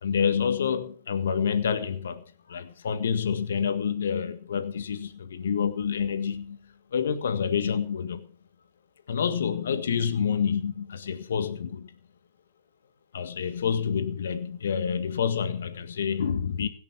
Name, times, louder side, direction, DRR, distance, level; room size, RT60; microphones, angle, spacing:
voice 1, 0.0-8.3 9.1-11.9 13.1-16.7, left 7 dB, 80° left, 1.7 m, -28 dB
17.0 x 11.0 x 6.0 m
hypercardioid pair, 130°, 0 cm